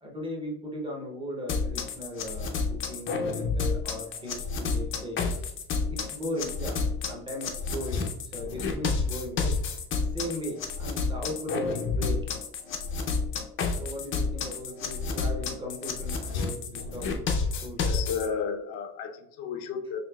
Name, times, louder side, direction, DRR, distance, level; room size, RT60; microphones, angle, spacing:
voice 1, 0.0-5.5 5.9-6.8 7.1-9.6 10.1-12.3 13.7-17.2 17.6-17.8, left 1 dB, 15° right, -1 dB, 0.6 m, -37 dB
sound 1, 1.5-18.3, left 4 dB, 35° left, 0.5 m, -30 dB
voice 2, 17.7-20.0, left 6 dB, 80° left, 6 dB, 0.7 m, -33 dB
5.0 x 3.2 x 2.2 m, 0.79 s
cardioid pair, 160°, 38 cm